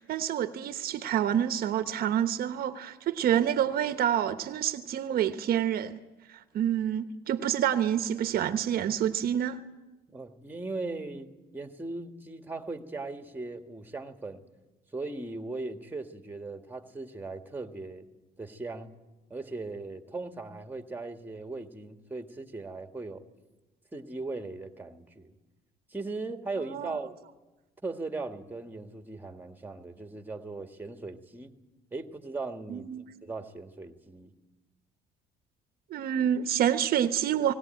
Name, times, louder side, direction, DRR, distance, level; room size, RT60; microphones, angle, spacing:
voice 1, 0.0-6.0 6.3-9.6 26.6-27.0 32.7-33.0 35.9-37.5, right 10 dB, 65° right, 1.0 m, -28 dB
voice 2, 10.1-14.4 14.9-18.0 18.4-18.9 19.3-23.2 23.9-25.3 25.9-27.2 27.8-31.5 31.9-32.9 33.2-34.3, right 3 dB, 10° right, 1.7 m, -38 dB
20.0 x 18.0 x 9.0 m
cardioid pair, 110°, 17 cm